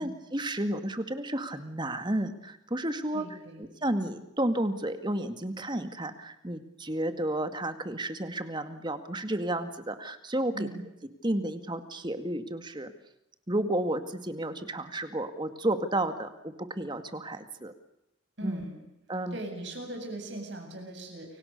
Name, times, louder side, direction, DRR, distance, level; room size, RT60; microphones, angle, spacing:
voice 1, 0.0-10.7 11.2-12.9 13.5-17.7 18.4-18.6 19.1-19.4, right 1 dB, 25° right, 9 dB, 2.1 m, -32 dB
voice 2, 3.1-3.6 10.5-10.8 18.4-18.8 19.3-21.4, right 1 dB, 65° right, 3 dB, 8.0 m, -39 dB
30.0 x 24.5 x 6.7 m, 0.86 s
head